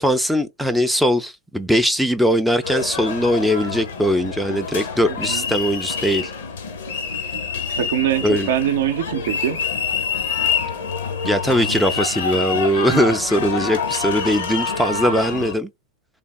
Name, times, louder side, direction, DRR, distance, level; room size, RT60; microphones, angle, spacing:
voice 1, 0.0-6.3 8.2-8.5 11.3-15.7, equal, ahead, 0.4 m, -20 dB
sound 1, 2.6-15.5, left 6 dB, 60° left, 0.8 m, -26 dB
voice 2, 5.1-5.4 7.8-9.6 12.9-13.0, right 10 dB, 60° right, 0.6 m, -23 dB
3.5 x 3.4 x 2.2 m
figure-of-eight pair, 90°, 0 cm